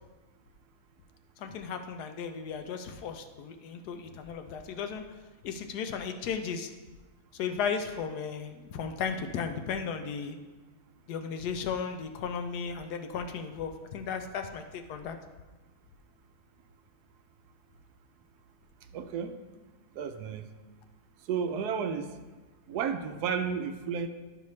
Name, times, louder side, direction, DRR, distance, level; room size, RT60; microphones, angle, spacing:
voice 1, 1.4-5.0 5.4-6.7 7.3-10.3 11.1-15.2, left 6 dB, 75° left, 7 dB, 1.1 m, -35 dB
voice 2, 18.9-19.4 20.0-20.4 21.3-22.1 22.7-24.1, right 6 dB, 75° right, 7 dB, 1.1 m, -32 dB
11.0 x 5.7 x 3.1 m, 1.2 s
omnidirectional pair, 1.8 m